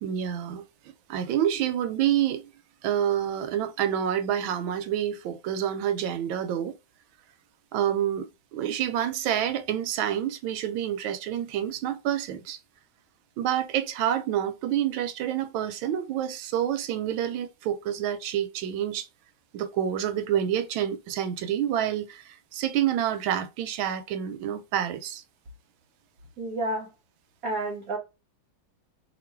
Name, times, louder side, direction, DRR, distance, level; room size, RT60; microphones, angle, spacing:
voice 1, 0.0-2.5 2.8-6.8 7.7-12.6 13.4-19.1 19.5-25.2, right 10 dB, 80° right, 1.3 m, -28 dB
voice 2, 26.4-26.9 27.4-28.0, right 1 dB, 55° right, 1.1 m, -30 dB
3.0 x 2.8 x 4.4 m
omnidirectional pair, 2.2 m